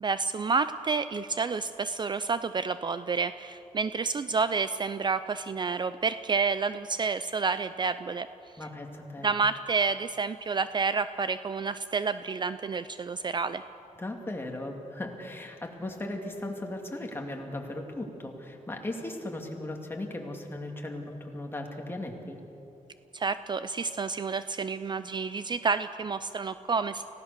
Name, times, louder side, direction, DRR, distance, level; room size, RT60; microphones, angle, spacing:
voice 1, 0.0-8.3 9.2-13.6 23.1-27.1, right 4 dB, 35° right, 12 dB, 0.5 m, -29 dB
voice 2, 8.6-9.3 14.0-22.4, left 1 dB, 15° left, 2 dB, 2.3 m, -37 dB
29.5 x 16.5 x 6.7 m, 2.9 s
wide cardioid pair, 165°, 13 cm